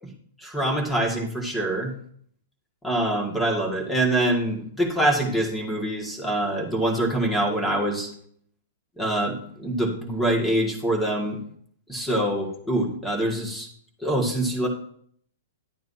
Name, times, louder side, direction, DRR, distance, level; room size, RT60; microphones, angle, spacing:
voice 1, 0.4-1.9 2.8-8.1 9.0-11.4 11.9-13.7 14.0-14.7, right 1 dB, 5° left, 0 dB, 2.0 m, -25 dB
11.0 x 9.2 x 2.8 m, 0.64 s
hypercardioid pair, 145°, 0 cm